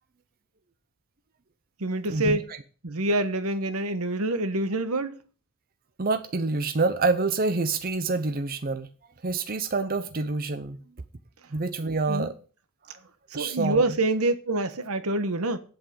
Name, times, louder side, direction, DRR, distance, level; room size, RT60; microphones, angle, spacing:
voice 1, 1.8-2.4 2.8-5.2 12.1-12.3 13.3-15.6, right 2 dB, 80° right, 1.3 m, -26 dB
voice 2, 6.0-8.9 9.2-10.8 11.5-12.4 12.9-13.0 13.3-13.9, right 3 dB, 40° right, 0.7 m, -27 dB
8.4 x 7.8 x 8.5 m
head